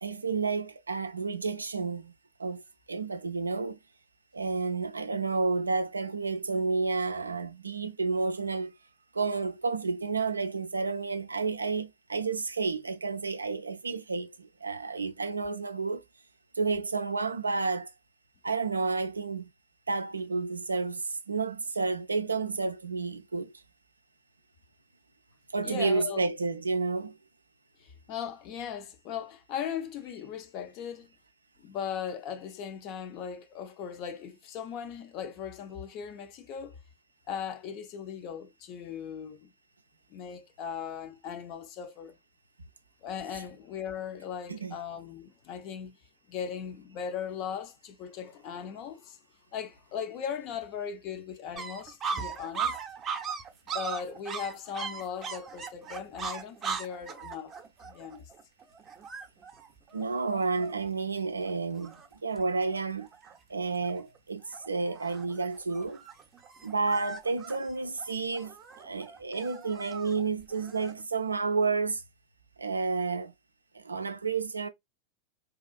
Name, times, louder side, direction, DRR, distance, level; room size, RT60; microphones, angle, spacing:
voice 1, 0.0-2.1 2.4-2.6 2.9-3.8 4.3-8.7 9.1-16.0 16.5-17.9 18.4-19.5 19.9-23.5 25.5-27.2 44.5-44.8 59.9-62.0 62.2-63.1 63.5-66.0 66.6-72.0 72.6-73.3 73.7-74.7, right 4 dB, 75° right, 0.3 m, -31 dB
voice 2, 25.6-26.3 27.8-31.1 31.6-36.8 37.3-39.5 40.1-42.2 43.0-46.0 46.3-49.2 49.5-52.8 53.7-57.6 57.8-58.3, left 8 dB, 40° left, 0.5 m, -38 dB
sound 1, 51.6-61.0 61.5-61.6 61.8-62.4 62.7-63.4 63.8-64.2 64.5-71.0, right 6 dB, 25° right, 0.6 m, -39 dB
2.8 x 2.4 x 2.3 m
figure-of-eight pair, 90°, 0 cm